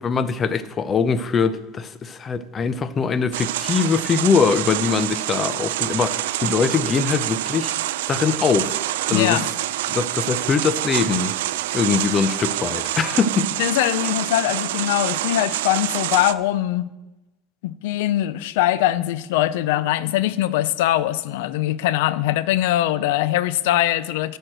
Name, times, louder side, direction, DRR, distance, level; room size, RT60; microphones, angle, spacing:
voice 1, 0.0-7.7 8.1-8.8 9.1-9.4 9.9-13.5, left 5 dB, 30° left, 0.7 m, -22 dB
sound 1, 3.3-16.3, right 14 dB, 90° right, 0.3 m, -26 dB
voice 2, 9.1-9.5 13.6-16.9 17.6-24.4, left 14 dB, 80° left, 0.5 m, -22 dB
12.5 x 4.6 x 7.7 m
supercardioid pair, 115°, 0 cm